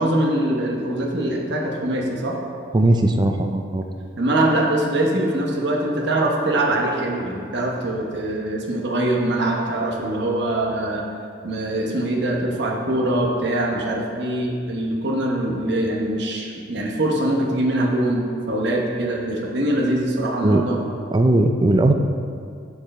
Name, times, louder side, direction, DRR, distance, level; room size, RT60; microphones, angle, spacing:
voice 1, 0.0-2.4 4.2-11.0 11.4-18.2 18.5-20.8, right 1 dB, 60° right, -1 dB, 1.0 m, -23 dB
voice 2, 2.7-3.8 20.4-20.7 21.1-21.9, right 1 dB, 20° right, 6 dB, 0.3 m, -18 dB
7.7 x 4.6 x 4.2 m, 2.3 s
head